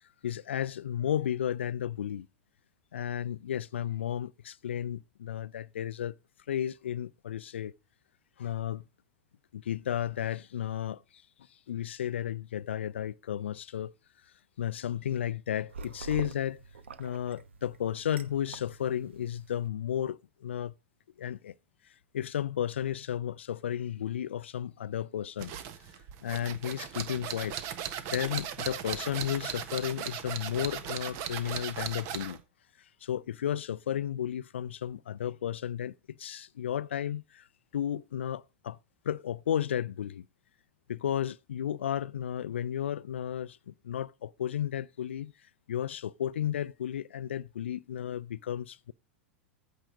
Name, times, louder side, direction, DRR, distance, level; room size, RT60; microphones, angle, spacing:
voice 1, 0.2-2.3 2.9-6.2 6.5-7.7 8.4-8.8 9.5-11.2 11.7-13.9 14.6-16.6 17.0-20.7 21.2-21.5 22.1-25.5 26.2-27.6 28.1-32.4 33.0-37.5 37.7-38.8 39.0-40.3 40.9-45.3 45.7-48.9, left 10 dB, 70° left, 0.5 m, -33 dB
sound 1, 15.7-19.7, right 5 dB, 70° right, 0.9 m, -46 dB
sound 2, 25.4-32.4, right 9 dB, 45° right, 1.4 m, -37 dB
14.5 x 5.1 x 5.0 m
figure-of-eight pair, 90°, 7 cm